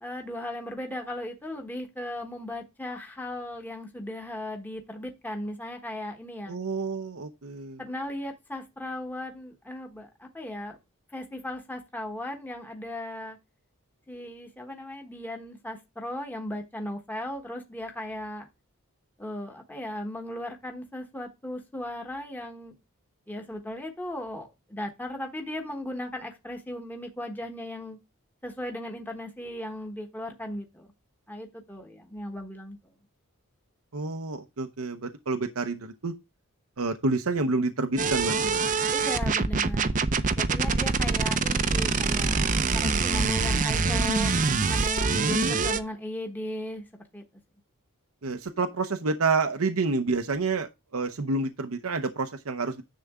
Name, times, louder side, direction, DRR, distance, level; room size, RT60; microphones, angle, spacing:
voice 1, 0.0-6.6 7.8-10.8 11.1-13.4 14.1-18.5 19.2-22.7 23.3-28.0 28.4-30.9 31.3-32.8 38.9-39.9 40.4-44.3 44.7-47.2, left 1 dB, 10° left, 1.2 m, -37 dB
voice 2, 6.5-7.8 33.9-36.1 36.8-38.6 48.2-52.8, right 3 dB, 75° right, 0.8 m, -29 dB
sound 1, 38.0-45.8, right 4 dB, 35° right, 0.7 m, -25 dB
10.5 x 6.9 x 3.7 m
head